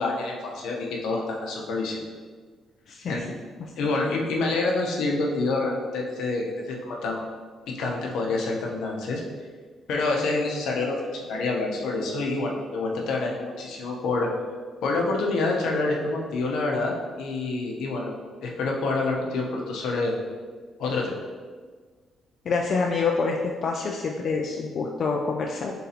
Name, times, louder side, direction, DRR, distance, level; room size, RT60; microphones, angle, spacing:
voice 1, 0.0-2.0 3.1-3.3 3.8-7.2 7.8-9.2 9.9-14.3 14.8-16.9 17.2-18.1 18.4-20.1 20.8-21.1, left 3 dB, 80° left, -1 dB, 0.7 m, -27 dB
voice 2, 2.9-3.2 22.5-25.7, left 4 dB, 55° left, 0 dB, 0.3 m, -26 dB
3.8 x 2.8 x 4.1 m, 1.5 s
cardioid pair, 90°, 0 cm